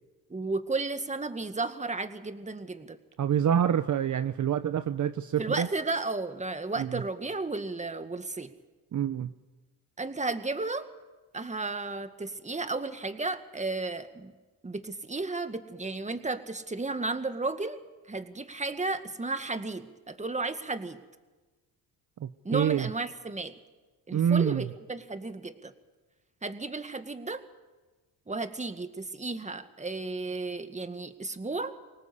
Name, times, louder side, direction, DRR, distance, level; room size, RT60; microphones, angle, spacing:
voice 1, 0.3-3.0 5.4-8.5 10.0-10.9 11.3-14.3 14.6-17.8 18.1-21.0 22.4-23.6 24.1-25.7 26.4-27.4 28.3-31.7, right 3 dB, 20° right, 9 dB, 2.0 m, -33 dB
voice 2, 3.2-5.7 6.8-7.0 8.9-9.3 22.2-22.9 24.1-24.7, right 9 dB, 50° right, 11 dB, 0.9 m, -26 dB
25.0 x 18.5 x 8.3 m, 1.2 s
cardioid pair, 85°, 39 cm